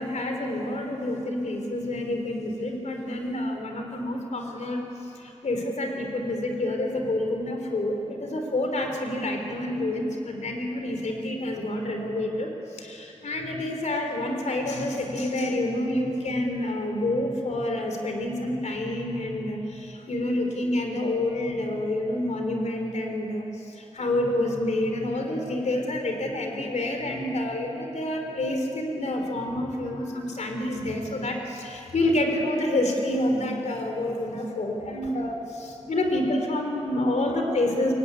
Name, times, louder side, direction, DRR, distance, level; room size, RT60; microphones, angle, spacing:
voice 1, 0.0-4.8 5.1-37.9, left 1 dB, 80° left, 3 dB, 3.8 m, -28 dB
25.5 x 23.0 x 9.8 m, 2.9 s
wide cardioid pair, 120°, 12 cm